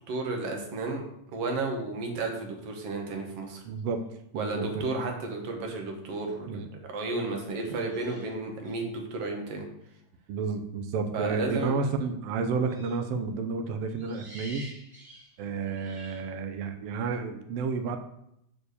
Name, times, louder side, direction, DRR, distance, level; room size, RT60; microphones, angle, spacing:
voice 1, 0.1-1.0 1.3-3.6 4.4-6.6 6.9-9.7 11.1-11.8, right 3 dB, 55° right, 2 dB, 2.1 m, -32 dB
voice 2, 3.6-4.0 4.3-4.8 6.5-6.7 10.3-14.6 15.4-18.0, right 5 dB, 80° right, 6 dB, 1.3 m, -31 dB
sound 1, 6.0-6.2 7.4-8.9 12.6-13.1 13.9-16.3, right 1 dB, 20° right, 1.6 m, -50 dB
6.6 x 4.6 x 6.8 m, 0.77 s
omnidirectional pair, 3.5 m